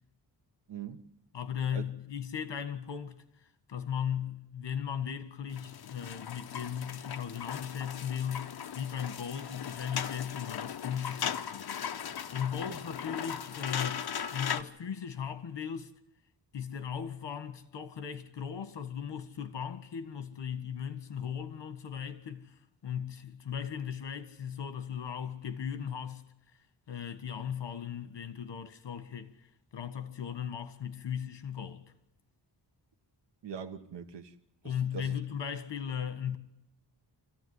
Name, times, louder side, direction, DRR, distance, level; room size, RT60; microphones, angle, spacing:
voice 1, 0.7-1.1 1.7-1.9 12.7-12.8 33.4-34.3 34.6-35.2, right 6 dB, 75° right, 1.5 m, -42 dB
voice 2, 1.3-3.2 3.7-11.8 12.3-14.1 14.3-15.9 16.5-22.5 22.8-26.2 26.9-29.3 29.7-31.9 34.6-36.4, left 8 dB, 80° left, 1.7 m, -37 dB
sound 1, 5.5-14.6, left 8 dB, 65° left, 0.9 m, -38 dB
25.0 x 15.0 x 9.7 m
wide cardioid pair, 145°, 42 cm